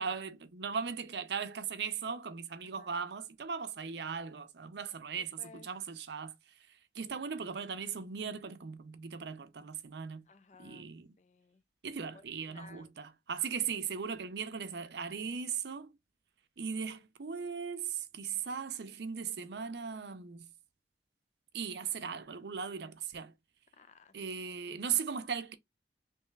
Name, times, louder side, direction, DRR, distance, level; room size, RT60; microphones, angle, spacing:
voice 1, 0.0-6.3 6.7-10.3 10.6-11.2 11.8-15.9 16.6-20.5 21.5-23.3 24.1-25.5, right 6 dB, 70° right, 0.6 m, -38 dB
voice 2, 5.2-5.7 10.3-10.9 11.2-11.6 12.0-12.9 23.7-24.1 24.5-24.8, left 4 dB, 40° left, 0.4 m, -58 dB
3.4 x 3.1 x 3.3 m
head